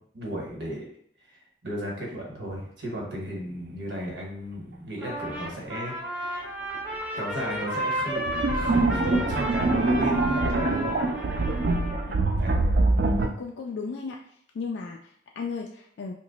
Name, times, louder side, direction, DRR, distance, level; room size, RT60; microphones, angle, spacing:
voice 1, 0.1-0.9 1.3-6.5 7.1-11.0 12.4-12.6, equal, 75° right, -2 dB, 1.1 m, -35 dB
Trumpet, 5.0-12.1, equal, 10° right, 0.6 m, -33 dB
sound 1, 6.7-6.8 8.2-13.3, right 2 dB, 50° right, 0.4 m, -24 dB
voice 2, 13.2-14.2 14.5-16.1, left 5 dB, 75° left, 1 dB, 0.3 m, -35 dB
2.9 x 2.1 x 3.9 m, 0.65 s
head